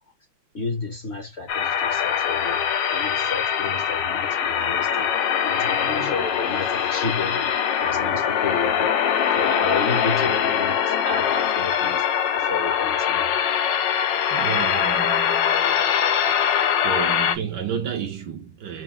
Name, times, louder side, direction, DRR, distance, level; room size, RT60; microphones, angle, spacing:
voice 1, 0.5-9.0 9.3-12.1 12.3-13.3, left 4 dB, 40° left, 1.1 m, -32 dB
sound 1, 1.5-17.4, left 8 dB, 70° left, 1.3 m, -22 dB
voice 2, 14.3-15.8 16.3-16.4 16.8-18.8, right 7 dB, 65° right, 1.4 m, -31 dB
4.5 x 2.7 x 3.6 m
omnidirectional pair, 2.2 m